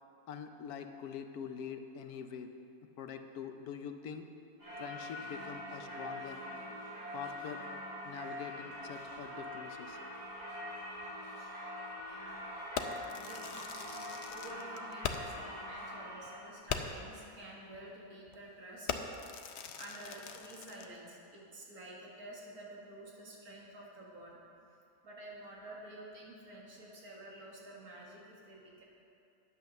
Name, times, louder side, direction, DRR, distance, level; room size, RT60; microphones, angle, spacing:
voice 1, 0.3-2.5 3.0-4.2 4.8-6.4 7.1-7.6 8.0-10.0, left 7 dB, 85° left, 7 dB, 1.2 m, -44 dB
Singing / Church bell, 4.6-16.5, left 1 dB, 50° right, 3.7 m, -44 dB
Fireworks, 12.7-15.5 15.8-15.9 16.3-16.4 16.7-17.1 17.7-17.9 18.3-18.5 18.9-21.0, left 6 dB, 60° left, 0.8 m, -41 dB
voice 2, 13.1-19.0 19.8-24.4 24.7-24.8 25.0-28.8, right 1 dB, 80° right, -3 dB, 2.3 m, -50 dB
9.7 x 8.3 x 6.6 m, 2.7 s
omnidirectional pair, 1.6 m